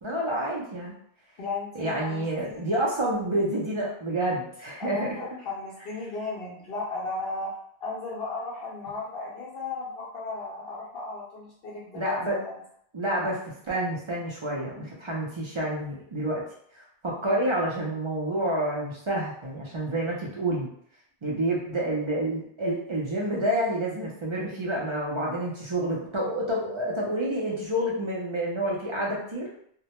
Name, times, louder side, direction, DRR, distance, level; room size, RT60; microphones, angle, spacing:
voice 1, 0.0-0.9 1.7-5.2 11.9-12.4 12.9-13.4 13.7-16.4 16.7-20.7 21.2-29.5, right 1 dB, 45° right, -4 dB, 0.4 m, -28 dB
voice 2, 1.4-2.6 4.8-12.6 14.7-14.9, left 3 dB, 70° left, -5 dB, 0.7 m, -35 dB
2.1 x 2.0 x 2.8 m, 0.66 s
omnidirectional pair, 1.1 m